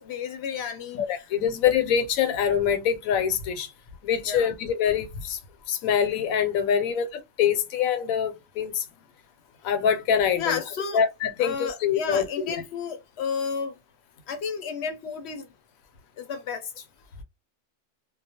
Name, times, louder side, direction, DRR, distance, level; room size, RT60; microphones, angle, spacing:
voice 1, 0.0-1.2 4.3-4.5 10.4-11.0 11.4-13.7 14.3-15.5 16.2-16.6, left 6 dB, 65° left, 0.8 m, -32 dB
voice 2, 0.9-3.7 4.0-5.4 5.7-8.8 9.6-10.6 10.9-12.5, left 8 dB, 85° left, 1.0 m, -25 dB
2.3 x 2.1 x 2.8 m
omnidirectional pair, 1.4 m